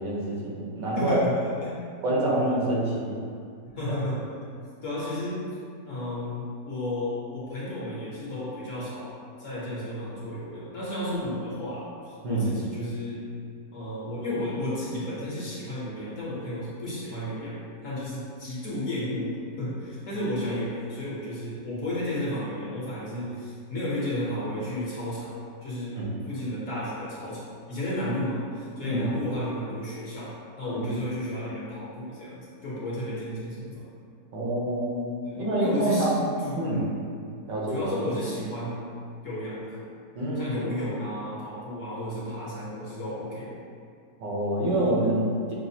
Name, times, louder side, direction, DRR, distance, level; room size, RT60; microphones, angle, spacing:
voice 1, 0.0-1.2 2.0-3.1 3.9-4.0 12.2-12.5 25.9-26.1 28.8-29.0 30.7-30.9 34.3-36.3 36.6-36.8 37.5-37.9 40.1-40.6 44.2-45.5, right 1 dB, 80° right, -5 dB, 1.5 m, -27 dB
voice 2, 0.9-1.8 3.7-4.2 4.8-5.4 5.8-9.1 9.4-13.3 13.7-25.3 25.6-33.8 35.2-37.0 37.7-38.8 39.2-39.8 40.4-43.6, left 1 dB, 55° left, -8 dB, 1.1 m, -33 dB
6.1 x 2.4 x 2.7 m, 2.3 s
omnidirectional pair, 1.9 m